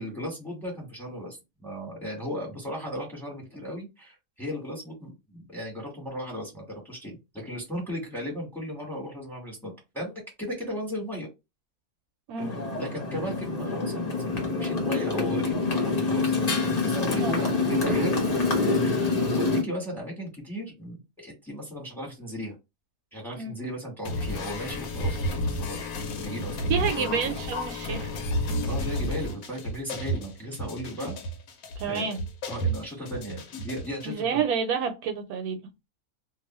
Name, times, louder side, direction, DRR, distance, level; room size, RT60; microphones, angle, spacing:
voice 1, 0.0-11.3 12.4-16.3 16.8-22.5 23.1-25.8 26.1-27.2 28.7-31.2 31.8-32.1 32.5-34.4, equal, ahead, 1.2 m, -36 dB
Motorcycle, 12.4-19.6, left 3 dB, 40° left, 0.6 m, -26 dB
sound 1, 24.0-34.1, equal, 75° left, 1.1 m, -31 dB
voice 2, 26.7-28.1 31.8-32.2 34.0-35.6, right 6 dB, 80° right, 1.0 m, -29 dB
2.6 x 2.3 x 2.9 m
omnidirectional pair, 1.6 m